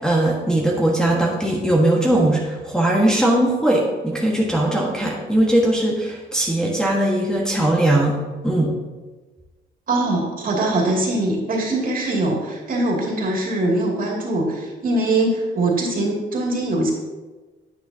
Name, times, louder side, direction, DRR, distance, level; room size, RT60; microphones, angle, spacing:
voice 1, 0.0-8.1 8.4-8.7, right 1 dB, 5° left, -4 dB, 1.5 m, -19 dB
voice 2, 9.9-16.9, right 2 dB, 45° right, -2 dB, 2.6 m, -22 dB
9.4 x 9.2 x 2.8 m, 1.3 s
cardioid pair, 90°, 20 cm